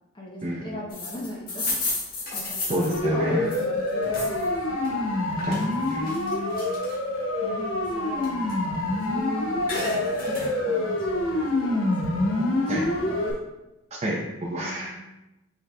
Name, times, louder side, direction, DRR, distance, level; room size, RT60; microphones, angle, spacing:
voice 1, 0.1-1.7 2.0-5.1 6.0-6.7 7.4-8.8 9.1-11.8 12.1-12.8 13.1-13.4 14.6-15.0, left 1 dB, 25° left, -4 dB, 0.8 m, -39 dB
sound 1, 0.9-4.5 4.8-7.2 7.6-9.2 9.5-10.5, left 2 dB, 45° left, 1.6 m, -33 dB
voice 2, 2.7-3.4 5.5-6.1 12.7-12.9 13.9-15.0, right 1 dB, 30° right, -4 dB, 0.6 m, -28 dB
Siren, 2.9-13.3, left 2 dB, 75° left, 0.9 m, -26 dB
5.9 x 4.0 x 2.2 m, 0.95 s
head